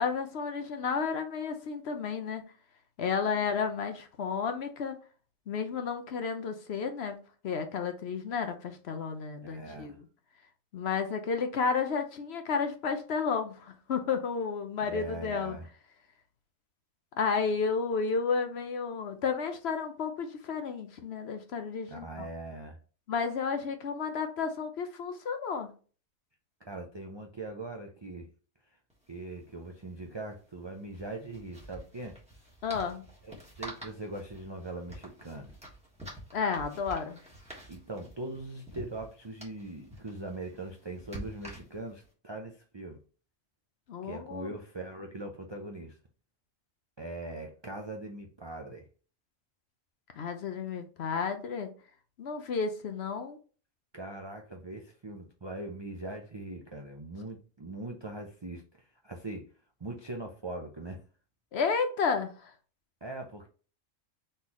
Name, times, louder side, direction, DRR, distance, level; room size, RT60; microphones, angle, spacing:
voice 1, 0.0-2.5 3.0-5.0 5.5-7.2 7.4-9.9 10.7-15.6 17.2-22.3 23.1-25.7 32.6-33.0 36.3-37.2 43.9-44.5 50.2-51.7 52.2-53.4 61.5-62.5, left 5 dB, 60° left, 0.9 m, -32 dB
voice 2, 9.4-10.0 14.8-15.6 21.9-22.8 26.6-28.3 29.1-32.2 33.2-33.3 33.6-35.5 37.7-43.0 44.0-46.0 47.0-48.9 53.9-59.5 59.8-61.0 63.0-63.5, right 2 dB, 40° right, 0.3 m, -41 dB
sound 1, 28.9-29.0 29.2-29.4 30.8-42.1, right 1 dB, 5° right, 1.4 m, -48 dB
4.0 x 3.9 x 3.0 m
omnidirectional pair, 1.4 m